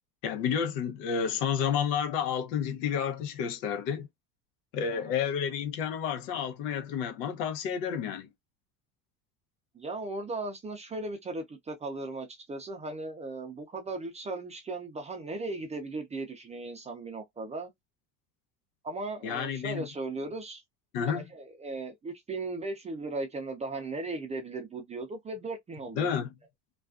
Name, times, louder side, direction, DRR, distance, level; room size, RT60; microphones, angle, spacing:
voice 1, 0.2-4.1 4.7-8.3 19.2-19.9 20.9-21.2 25.9-26.3, left 7 dB, 90° left, 0.8 m, -30 dB
voice 2, 9.7-17.7 18.8-20.6 21.0-26.1, right 2 dB, 15° right, 0.3 m, -37 dB
2.4 x 2.3 x 2.3 m
supercardioid pair, 120°, 48 cm